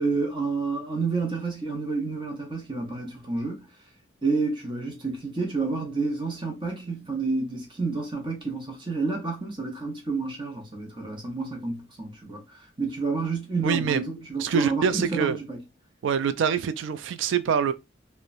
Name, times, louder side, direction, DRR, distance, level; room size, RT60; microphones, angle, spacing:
voice 1, 0.0-3.7 4.2-12.4 12.8-15.6, right 3 dB, 25° right, 0.7 m, -29 dB
voice 2, 13.6-14.0 14.4-15.4 16.0-17.7, right 7 dB, 80° right, 0.3 m, -25 dB
2.9 x 2.1 x 2.5 m
head